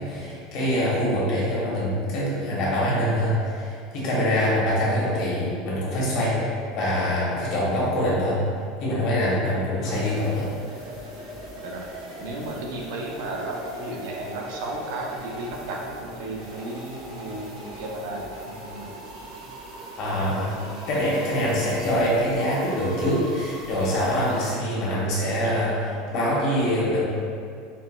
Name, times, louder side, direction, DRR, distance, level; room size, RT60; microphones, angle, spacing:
voice 1, 0.0-8.4 8.8-10.5 20.0-20.6 20.9-25.7 26.1-27.0, equal, 45° left, -6 dB, 0.9 m, -24 dB
sound 1, 9.9-24.5, right 1 dB, 90° right, 1.0 m, -40 dB
voice 2, 12.2-18.9 20.1-20.3 20.5-20.8 25.4-25.6, right 2 dB, 65° right, -1 dB, 0.5 m, -34 dB
4.3 x 2.1 x 2.2 m, 2.4 s
supercardioid pair, 170°, 0 cm